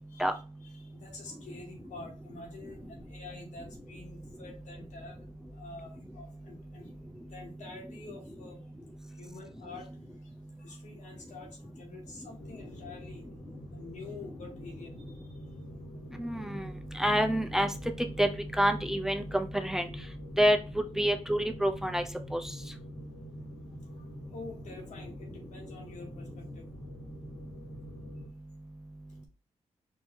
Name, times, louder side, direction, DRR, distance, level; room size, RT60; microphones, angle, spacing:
voice 1, 0.1-5.3 5.5-6.9 7.2-8.6 9.1-9.9 10.2-10.3 10.6-13.2 13.7-15.4 23.9-26.6, left 3 dB, 85° left, 0 dB, 1.8 m, -48 dB
sound 1, 12.4-28.3, left 1 dB, 70° left, 1.6 m, -47 dB
voice 2, 16.2-16.6 17.0-17.7 18.2-18.3 18.6-19.9 20.4-20.6 21.0-22.0 22.3-22.4, equal, 5° right, 5 dB, 0.6 m, -27 dB
4.5 x 2.8 x 3.6 m, 0.32 s
cardioid pair, 90°, 12 cm